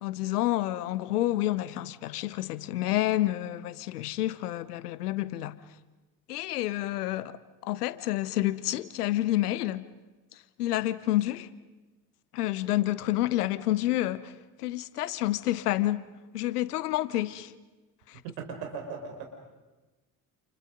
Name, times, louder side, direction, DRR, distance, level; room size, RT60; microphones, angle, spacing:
voice 1, 0.0-5.6 6.3-7.4 7.6-9.9 10.6-11.5 12.3-14.3 14.6-16.0 16.3-17.5 18.1-18.2, left 15 dB, 85° left, 1.0 m, -29 dB
voice 2, 18.2-19.3, right 5 dB, 75° right, 5.2 m, -38 dB
29.0 x 29.0 x 5.3 m
hypercardioid pair, 50°, 45 cm